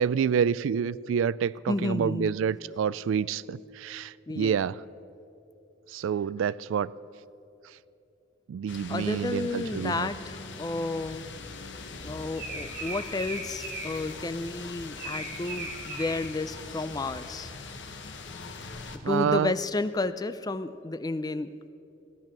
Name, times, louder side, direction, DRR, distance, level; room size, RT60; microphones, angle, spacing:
voice 1, 0.0-4.8 5.9-6.9 8.5-10.1 19.0-19.5, right 7 dB, 80° right, 21 dB, 0.3 m, -28 dB
voice 2, 1.7-2.4 4.3-4.6 8.9-11.3 12.0-17.5 19.1-21.7, left 2 dB, 20° left, 13 dB, 0.4 m, -31 dB
sound 1, 8.7-19.0, left 4 dB, 65° left, 1.0 m, -42 dB
sound 2, 11.8-17.5, right 2 dB, 55° right, 2.5 m, -40 dB
15.5 x 10.5 x 6.1 m, 2.7 s
head